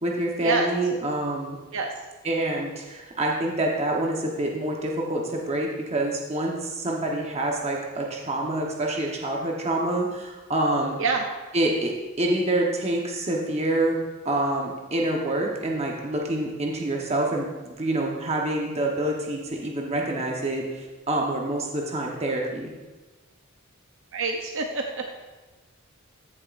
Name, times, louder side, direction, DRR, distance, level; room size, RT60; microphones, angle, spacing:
voice 1, 0.0-1.6 2.2-11.0 11.5-14.0 14.2-22.7, right 1 dB, 30° right, -1 dB, 1.0 m, -27 dB
voice 2, 24.1-25.3, right 4 dB, 65° right, 3 dB, 0.7 m, -26 dB
14.5 x 7.2 x 2.5 m, 1.2 s
head